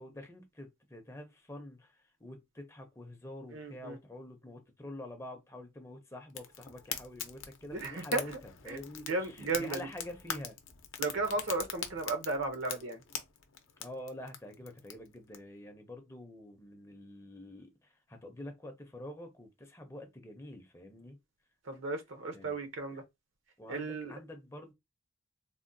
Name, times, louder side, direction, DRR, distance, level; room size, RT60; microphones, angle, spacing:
voice 1, 0.0-10.6 13.8-21.2 22.3-22.6 22.9-23.0 23.6-24.7, left 1 dB, 15° left, 0.5 m, -47 dB
voice 2, 3.5-4.0 7.7-8.2 8.7-8.8 9.1-9.8 11.0-13.0 21.7-23.0 23.7-24.1, right 3 dB, 75° right, 0.7 m, -34 dB
Fire, 6.3-15.4, left 9 dB, 75° left, 0.6 m, -43 dB
3.5 x 2.1 x 2.6 m
head